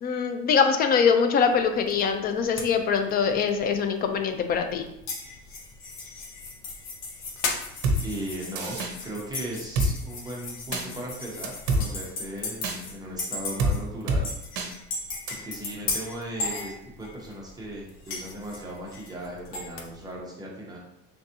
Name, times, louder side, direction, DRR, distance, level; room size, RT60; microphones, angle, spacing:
voice 1, 0.0-4.8, left 6 dB, 30° left, 7 dB, 0.4 m, -23 dB
sound 1, 1.4-20.2, left 4 dB, 70° left, 0.7 m, -43 dB
sound 2, 5.1-12.9 13.2-13.8 14.2-17.3 18.1-19.7, left 3 dB, 85° left, 1.3 m, -36 dB
Drum kit, 7.8-8.0 8.6-8.9 9.8-9.9 10.7-10.8 11.4-11.8 12.6-12.8 13.6-13.7 14.1-14.2 14.6-14.7 15.3-15.4, right 2 dB, 55° right, 0.7 m, -24 dB
voice 2, 8.0-8.8 9.0-14.3 15.3-20.8, right 1 dB, 15° right, -3 dB, 0.8 m, -37 dB
3.9 x 3.5 x 2.7 m, 0.82 s
cardioid pair, 155°, 30 cm